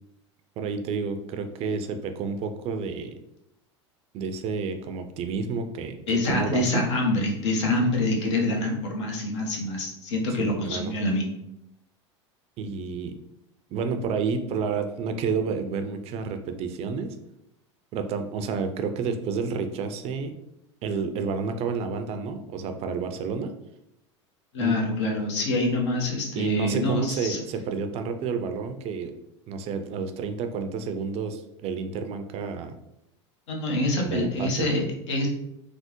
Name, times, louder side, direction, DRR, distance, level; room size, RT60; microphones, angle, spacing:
voice 1, 0.6-3.2 4.1-6.8 7.6-7.9 10.4-10.9 12.6-13.2 13.7-17.2 17.9-20.3 20.8-23.5 24.6-24.7 26.4-29.2 29.5-32.7 34.0-34.7, right 5 dB, 45° right, 7 dB, 0.4 m, -30 dB
voice 2, 6.1-11.3 24.5-27.4 33.5-35.3, left 2 dB, 70° left, 0 dB, 0.8 m, -26 dB
3.4 x 2.0 x 2.9 m, 0.82 s
hypercardioid pair, 85°, 15 cm